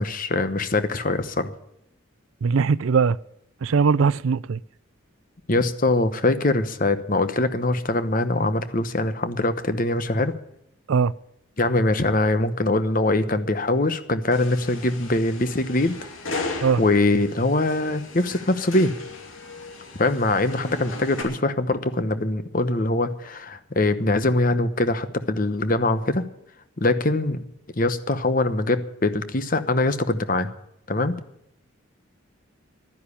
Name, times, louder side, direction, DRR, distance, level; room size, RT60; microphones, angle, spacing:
voice 1, 0.0-1.5 5.5-10.3 11.6-16.0 16.8-18.9 20.0-26.2 26.8-27.4 27.8-30.5 30.9-31.2, left 2 dB, 40° left, 1.0 m, -23 dB
voice 2, 2.4-3.2 3.6-4.6 10.9-11.1 16.6-16.8, right 5 dB, 80° right, 0.4 m, -20 dB
sound 1, 14.3-21.2, left 3 dB, 80° left, 2.7 m, -36 dB
12.0 x 10.5 x 8.3 m
head